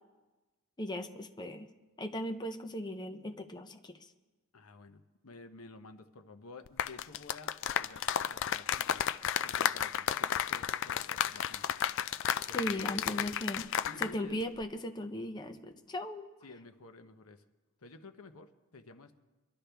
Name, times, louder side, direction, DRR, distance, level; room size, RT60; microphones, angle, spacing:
voice 1, 0.8-1.7 2.0-4.0 12.5-13.7 14.0-16.3, left 1 dB, 20° left, 6 dB, 0.7 m, -37 dB
voice 2, 4.5-9.0 9.4-11.7 12.5-13.3 13.8-14.4 16.4-17.4 17.8-19.1, left 3 dB, 85° left, 9 dB, 0.9 m, -52 dB
sound 1, 6.7-14.2 14.4-14.6, left 9 dB, 60° left, 0.4 m, -32 dB
24.5 x 12.0 x 3.4 m, 1.2 s
head